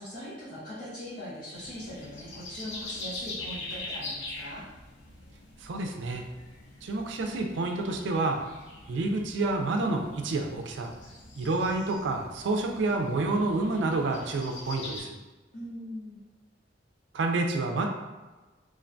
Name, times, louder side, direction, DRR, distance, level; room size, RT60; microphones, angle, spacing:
voice 1, 0.0-4.7 15.5-16.2, equal, 50° left, -10 dB, 0.7 m, -41 dB
sound 1, 1.5-15.0, left 2 dB, 85° left, 0.5 m, -43 dB
voice 2, 5.6-6.2 6.8-8.4 8.9-10.9 11.4-15.2 17.1-17.9, right 2 dB, 70° right, 3 dB, 0.3 m, -28 dB
2.5 x 2.2 x 2.5 m, 1.2 s
head